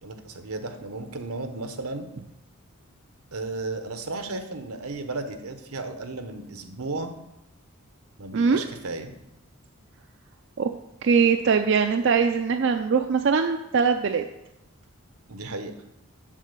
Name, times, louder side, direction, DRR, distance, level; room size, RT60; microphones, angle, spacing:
voice 1, 0.0-2.1 3.3-7.1 8.2-9.1 15.3-15.7, right 3 dB, 85° right, 7 dB, 1.0 m, -34 dB
voice 2, 11.0-14.2, right 5 dB, 55° right, 6 dB, 0.4 m, -21 dB
7.4 x 4.7 x 6.7 m, 0.90 s
head